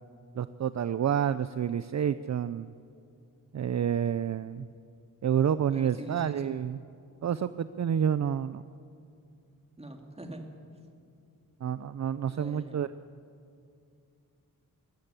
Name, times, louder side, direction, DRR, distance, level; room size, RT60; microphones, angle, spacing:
voice 1, 0.4-2.7 3.5-4.6 5.2-6.8 7.2-8.6 11.6-12.9, right 8 dB, 55° right, 14 dB, 0.5 m, -29 dB
voice 2, 5.7-6.5 9.8-10.4 12.3-12.8, right 1 dB, 15° right, 3 dB, 2.3 m, -43 dB
22.5 x 13.5 x 9.9 m, 2.4 s
wide cardioid pair, 140°, 34 cm